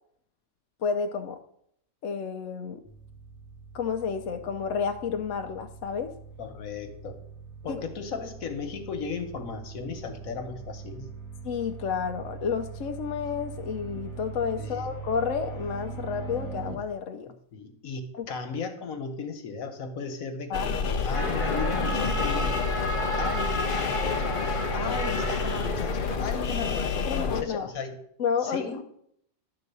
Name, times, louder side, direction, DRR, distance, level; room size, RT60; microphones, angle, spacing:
voice 1, 0.8-1.4 2.0-2.8 3.7-6.1 7.7-7.8 11.4-17.3 18.1-18.3 20.5-20.8 27.0-27.7 28.2-28.6, left 6 dB, 70° left, 5 dB, 1.0 m, -30 dB
sound 1, 2.9-16.7, right 5 dB, 25° right, 1.2 m, -42 dB
voice 2, 6.4-7.2 7.6-11.1 14.6-14.9 17.5-20.5 20.8-22.5 23.1-24.4 24.7-28.0 28.4-28.8, left 5 dB, 85° left, 6 dB, 1.6 m, -36 dB
sound 2, 20.5-27.4, left 4 dB, 45° left, 0.8 m, -29 dB
sound 3, 21.1-26.2, left 1 dB, 25° left, 1.0 m, -31 dB
11.5 x 3.9 x 6.8 m, 0.71 s
omnidirectional pair, 1.4 m